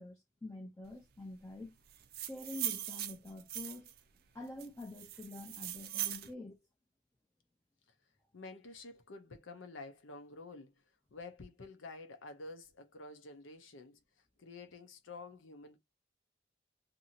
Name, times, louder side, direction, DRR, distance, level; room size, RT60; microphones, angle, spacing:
voice 1, 0.0-1.8 2.2-3.9 4.3-6.6, left 2 dB, 15° left, 0.5 m, -47 dB
sound 1, 1.9-4.0 4.6-6.3, right 12 dB, 55° right, 0.4 m, -40 dB
voice 2, 8.3-10.7 11.1-14.0 14.4-15.8, left 3 dB, 85° left, 0.7 m, -50 dB
2.8 x 2.6 x 2.7 m
head